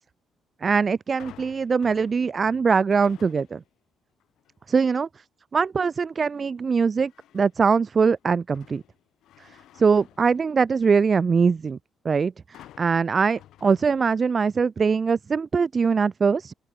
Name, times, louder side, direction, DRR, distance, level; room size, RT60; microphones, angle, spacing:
voice 1, 0.6-3.6 4.7-5.1 5.5-8.8 9.8-11.8 12.0-16.5, right 5 dB, 40° right, 0.3 m, -22 dB
sound 1, 1.2-3.7 4.2-4.6 7.0-7.7 8.2-11.0 12.5-14.5 14.8-14.9, left 13 dB, 80° left, 7.3 m, -52 dB
open air
cardioid pair, 90°, 0 cm